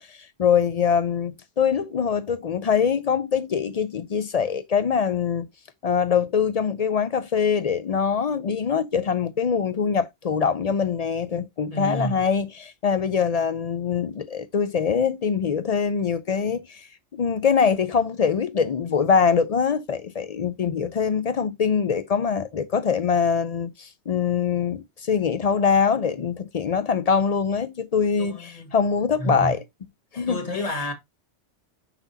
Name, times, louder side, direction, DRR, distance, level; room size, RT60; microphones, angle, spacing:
voice 1, 0.0-5.5 5.8-29.6 30.1-30.4, left 6 dB, 55° left, 0.4 m, -23 dB
voice 2, 11.7-12.2 26.2-26.3 28.2-28.7 29.2-29.5 30.3-30.9, equal, 35° left, 1.5 m, -30 dB
6.0 x 5.8 x 2.7 m
omnidirectional pair, 1.1 m